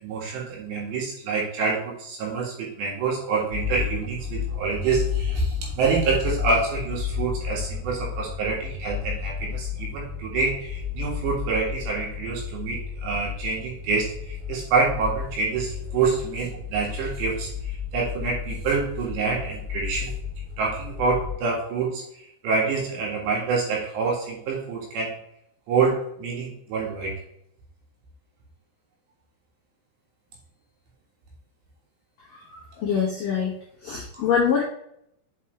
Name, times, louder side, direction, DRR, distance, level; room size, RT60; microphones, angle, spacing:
voice 1, 0.0-20.1 20.6-25.2 25.7-27.1, right 4 dB, 65° right, -2 dB, 3.9 m, -27 dB
sound 1, 3.5-21.4, left 7 dB, 90° right, 4.5 m, -32 dB
voice 2, 32.3-33.5 33.8-34.6, left 7 dB, 75° left, -4 dB, 2.0 m, -25 dB
8.3 x 5.3 x 3.3 m, 0.72 s
omnidirectional pair, 5.8 m